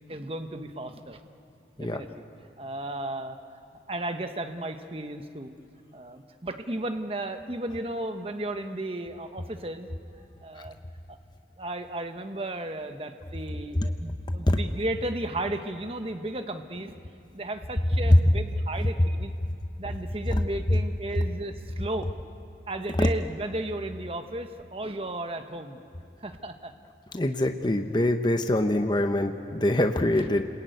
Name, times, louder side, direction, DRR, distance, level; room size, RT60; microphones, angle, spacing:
voice 1, 0.1-1.2 1.8-2.1 2.6-3.4 3.9-5.5 5.9-9.9 10.4-10.8 11.1-11.2 11.6-16.9 17.3-19.3 19.8-22.1 22.7-25.8 26.2-26.7, right 1 dB, 30° right, 7 dB, 1.1 m, -34 dB
voice 2, 27.1-30.4, left 1 dB, 25° left, 7 dB, 0.8 m, -24 dB
29.5 x 21.0 x 9.3 m, 2.6 s
head